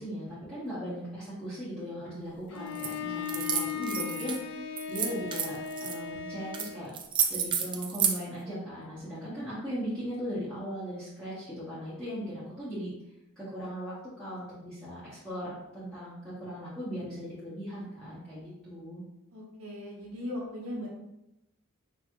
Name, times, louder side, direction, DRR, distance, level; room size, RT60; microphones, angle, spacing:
voice 1, 0.0-6.9 7.3-12.9 13.4-19.0, equal, 5° left, -13 dB, 1.4 m, -38 dB
Bowed string instrument, 2.5-6.9, left 7 dB, 60° left, 0.5 m, -37 dB
sound 1, 2.8-2.9 3.3-4.4 4.8-6.0 6.5-6.7 6.9-8.2, right 7 dB, 20° right, 0.3 m, -30 dB
voice 2, 19.3-20.9, left 1 dB, 80° right, -5 dB, 1.2 m, -38 dB
4.9 x 3.1 x 3.1 m, 0.89 s
head